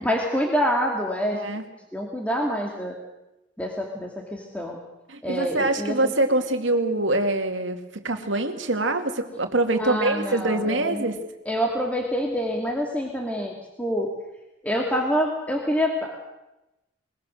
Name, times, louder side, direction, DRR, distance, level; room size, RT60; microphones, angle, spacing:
voice 1, 0.0-1.5 1.9-3.0 3.6-4.8 5.2-5.9 9.8-11.1 11.5-13.5 13.8-14.1 14.6-16.3, equal, 10° left, 0 dB, 2.4 m, -26 dB
voice 2, 1.3-1.6 5.1-11.2, right 2 dB, 80° right, 5 dB, 2.4 m, -24 dB
22.0 x 21.5 x 6.5 m, 0.94 s
head